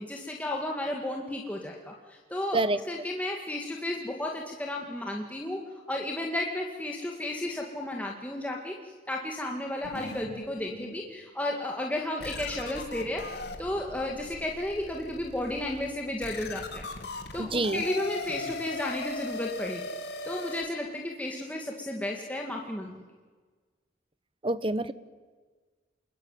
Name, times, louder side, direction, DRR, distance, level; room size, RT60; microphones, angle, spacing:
voice 1, 0.0-2.6 2.9-5.6 5.9-16.9 17.3-19.8 20.2-23.0, left 1 dB, 10° left, 0 dB, 2.1 m, -33 dB
sound 1, 9.8-11.0 11.6-11.7 12.2-20.7, left 2 dB, 60° left, 2.5 m, -39 dB
voice 2, 17.4-17.8 24.4-24.9, right 2 dB, 30° right, 15 dB, 0.9 m, -27 dB
27.5 x 21.5 x 9.1 m, 1.4 s
head